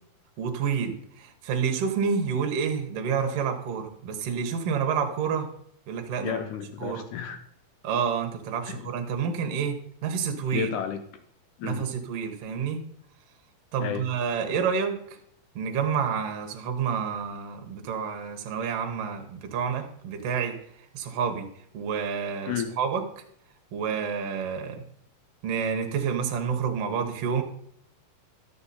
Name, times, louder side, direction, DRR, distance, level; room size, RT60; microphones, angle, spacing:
voice 1, 0.4-5.5 5.9-6.4 6.8-7.1 7.8-10.7 11.6-12.8 13.7-15.0 15.5-20.6 20.9-21.5 21.7-23.0 23.7-24.8 25.4-27.4, right 6 dB, 65° right, 5 dB, 1.5 m, -29 dB
voice 2, 6.2-7.4 8.7-8.8 10.5-11.0 11.6-11.9 13.8-14.1 22.5-22.7, left 9 dB, 80° left, 8 dB, 1.9 m, -32 dB
12.0 x 7.2 x 4.1 m, 0.68 s
omnidirectional pair, 4.2 m